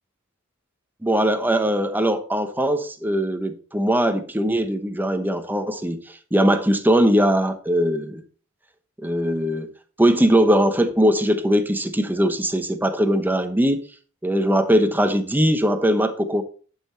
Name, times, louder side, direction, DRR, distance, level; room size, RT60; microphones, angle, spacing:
voice 1, 1.0-8.2 9.0-9.7 10.0-13.8 14.2-16.4, equal, 10° right, 0.9 m, -20 dB
10.5 x 5.8 x 4.2 m
head